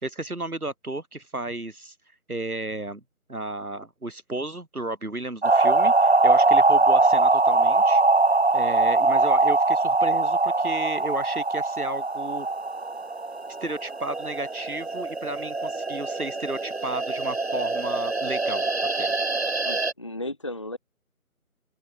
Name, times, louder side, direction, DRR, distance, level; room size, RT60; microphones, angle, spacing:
voice 1, 0.0-1.9 2.3-3.0 3.3-8.0 8.5-12.5 13.6-18.7 19.0-19.1, right 2 dB, 80° right, 3.7 m, -33 dB
sound 1, 5.4-19.9, right 3 dB, 45° right, 2.2 m, -22 dB
voice 2, 19.6-20.8, left 1 dB, 20° left, 1.4 m, -34 dB
open air
figure-of-eight pair, 165°, 44 cm